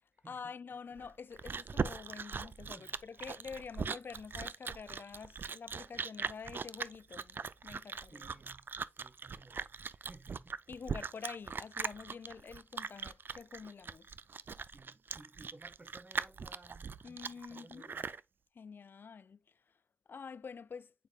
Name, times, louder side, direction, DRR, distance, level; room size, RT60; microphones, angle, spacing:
voice 1, 0.3-8.3 10.7-14.1 17.0-17.9 18.6-19.4 20.1-20.9, left 5 dB, 75° left, 0.3 m, -47 dB
Chewing mastication, 1.0-18.2, right 5 dB, 70° right, 0.5 m, -40 dB
voice 2, 8.1-8.7 9.0-10.8 14.7-18.1, right 2 dB, 40° right, 1.3 m, -58 dB
9.1 x 5.0 x 2.4 m
wide cardioid pair, 65°, 4 cm